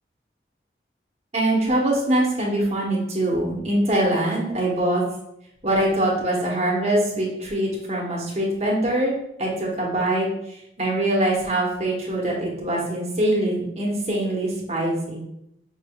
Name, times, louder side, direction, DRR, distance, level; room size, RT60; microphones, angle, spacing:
voice 1, 1.3-5.0 5.6-10.3 10.8-15.2, right 1 dB, 35° right, -3 dB, 1.0 m, -23 dB
5.6 x 3.6 x 2.3 m, 0.81 s
head